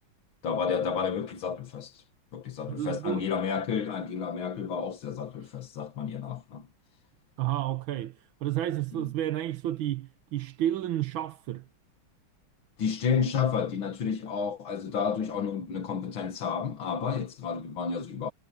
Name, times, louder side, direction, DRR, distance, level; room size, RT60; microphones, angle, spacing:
voice 1, 0.4-2.1 2.3-6.7 9.0-9.1 12.8-18.3, left 6 dB, 70° left, 2.4 m, -31 dB
voice 2, 2.7-3.3 7.4-11.6, right 12 dB, 75° right, 1.7 m, -31 dB
omnidirectional pair, 2.3 m